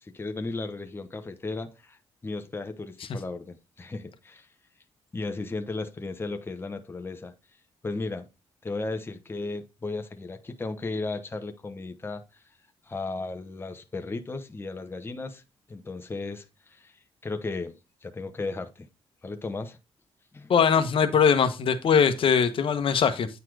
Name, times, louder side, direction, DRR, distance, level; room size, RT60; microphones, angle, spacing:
voice 1, 0.0-2.0 2.2-4.5 5.1-7.3 7.8-8.3 8.6-12.2 12.9-15.4 15.7-16.9 17.2-18.9 19.2-19.8 20.3-20.5, left 3 dB, 25° left, 1.0 m, -35 dB
voice 2, 20.5-23.3, left 7 dB, 65° left, 1.0 m, -21 dB
9.2 x 4.2 x 4.8 m
cardioid pair, 95°, 10 cm